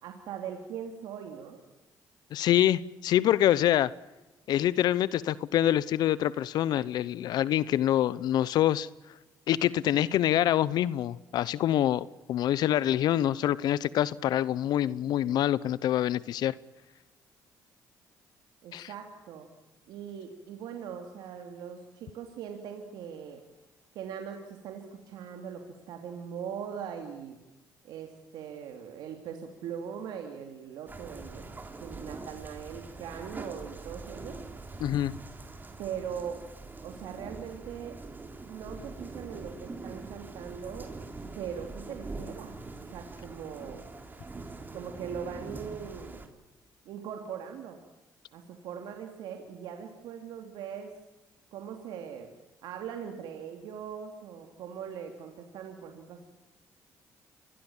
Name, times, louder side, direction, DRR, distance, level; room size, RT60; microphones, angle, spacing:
voice 1, 0.0-1.6 9.8-10.0 18.6-19.5 19.9-23.4 23.9-27.4 27.8-31.4 31.8-34.4 35.8-36.4 36.8-38.0 38.4-40.9 41.3-42.6 42.9-43.9 44.7-46.2 46.8-47.8 48.3-50.9 51.5-52.3 52.6-56.3, right 8 dB, 80° right, 4 dB, 2.9 m, -40 dB
voice 2, 2.3-3.9 4.5-8.9 9.5-16.5 18.7-18.9 34.8-35.1, left 12 dB, 75° left, 19 dB, 0.8 m, -26 dB
sound 1, 30.9-46.3, right 3 dB, 25° right, 3.8 m, -43 dB
27.5 x 21.0 x 7.3 m, 1.0 s
cardioid pair, 80°, 7 cm